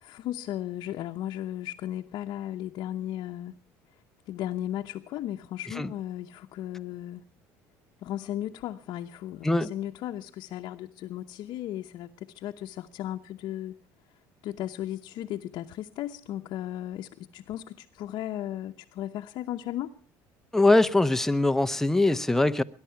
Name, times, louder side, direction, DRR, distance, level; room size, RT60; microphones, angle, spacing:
voice 1, 0.0-3.5 4.3-7.2 8.0-13.8 14.4-19.9, left 12 dB, 65° left, 2 dB, 0.9 m, -35 dB
voice 2, 20.5-22.6, left 2 dB, 5° left, 9 dB, 0.8 m, -22 dB
21.0 x 10.5 x 5.8 m, 0.44 s
supercardioid pair, 95°, 8 cm